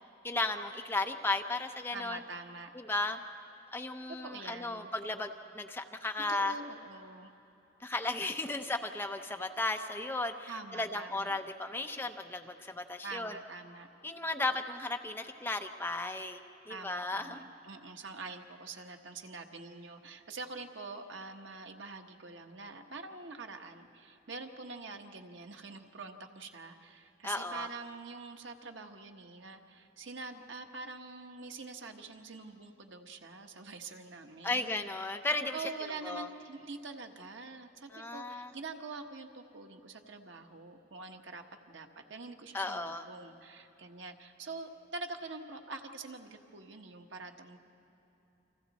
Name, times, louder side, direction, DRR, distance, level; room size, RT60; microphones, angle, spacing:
voice 1, 0.2-2.2 2.7-3.2 3.7-6.5 7.8-13.4 14.0-17.4 27.2-27.7 34.4-35.6 36.0-36.3 37.9-38.5 42.5-43.0, left 2 dB, 10° left, 5 dB, 0.7 m, -35 dB
voice 2, 1.9-2.7 4.2-4.9 6.3-7.3 10.5-11.4 13.0-13.9 16.7-34.8 35.5-47.6, right 3 dB, 80° right, 4 dB, 1.3 m, -45 dB
29.5 x 26.0 x 4.2 m, 3.0 s
head